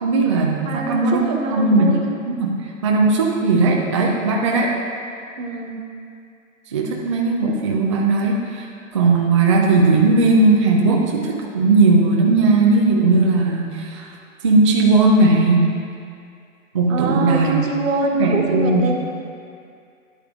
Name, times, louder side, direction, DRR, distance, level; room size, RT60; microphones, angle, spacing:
voice 1, 0.0-2.0 2.3-2.5 2.8-4.7 6.7-14.1 14.4-15.7 16.7-17.7 18.2-18.9, right 3 dB, 25° right, -1 dB, 0.3 m, -17 dB
voice 2, 0.6-2.0 5.4-5.8 16.9-19.0, right 2 dB, 70° right, 1 dB, 1.4 m, -24 dB
10.5 x 8.4 x 2.4 m, 2.4 s
hypercardioid pair, 140°, 41 cm